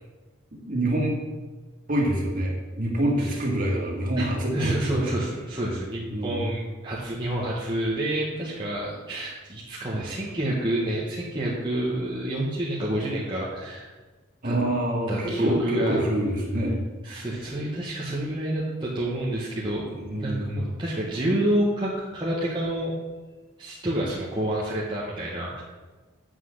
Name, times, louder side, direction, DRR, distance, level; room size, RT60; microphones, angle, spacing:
voice 1, 0.5-1.2 1.9-5.1 6.1-6.6 14.4-16.7 20.0-20.7, right 1 dB, 40° right, -1 dB, 1.9 m, -26 dB
voice 2, 4.2-13.9 14.4-14.6 15.1-16.0 17.0-19.9 20.2-22.9 23.6-25.6, right 1 dB, 20° right, -6 dB, 1.2 m, -28 dB
8.2 x 5.9 x 6.5 m, 1.3 s
head